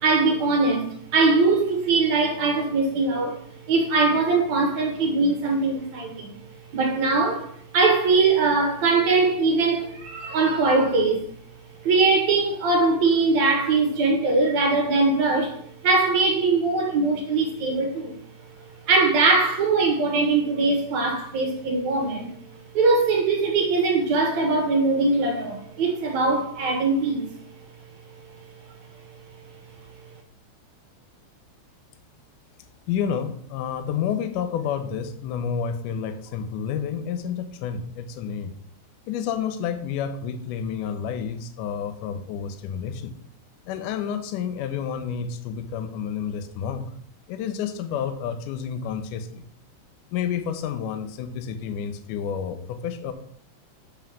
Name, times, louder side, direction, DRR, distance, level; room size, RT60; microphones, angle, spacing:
voice 1, 0.0-6.4 6.7-11.2 11.8-18.2 18.9-22.3 22.7-27.3, right 3 dB, 65° right, 2.2 m, -21 dB
voice 2, 32.9-38.5 39.1-43.1 43.7-46.9 47.3-49.4 50.1-53.1, left 7 dB, 75° left, 2.1 m, -30 dB
5.8 x 5.4 x 6.2 m
omnidirectional pair, 4.0 m